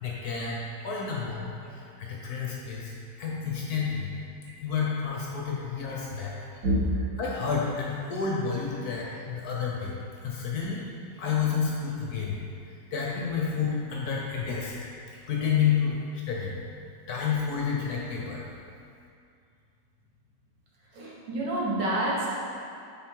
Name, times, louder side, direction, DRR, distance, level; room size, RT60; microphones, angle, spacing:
voice 1, 0.0-4.1 4.6-6.4 7.2-10.0 10.2-10.8 11.1-12.4 12.6-16.5 17.1-18.5, left 6 dB, 60° left, -3 dB, 1.2 m, -30 dB
voice 2, 6.6-7.0 20.9-22.3, right 1 dB, 70° right, -6 dB, 1.9 m, -27 dB
7.1 x 4.2 x 4.6 m, 2.4 s
omnidirectional pair, 2.1 m